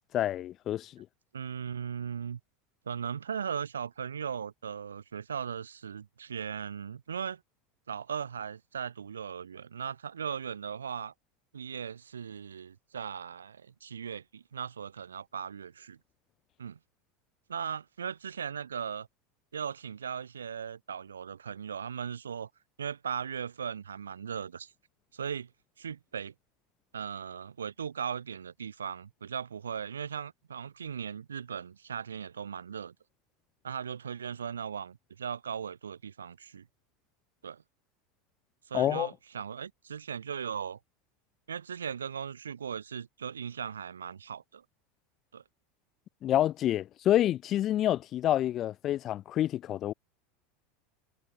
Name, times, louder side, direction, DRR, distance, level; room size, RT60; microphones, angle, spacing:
voice 1, 0.1-1.1 38.7-39.1 46.2-49.9, left 12 dB, 40° left, 0.6 m, -28 dB
voice 2, 1.3-2.4 2.9-7.4 7.9-11.1 11.5-16.0 16.6-16.8 17.5-19.1 19.5-22.5 22.8-24.7 25.1-25.5 25.8-26.3 26.9-32.9 33.6-36.6 37.4-37.6 38.7-40.8 41.5-44.6 45.3-45.4, right 7 dB, 80° right, 0.7 m, -38 dB
figure-of-eight pair, 80°, 0 cm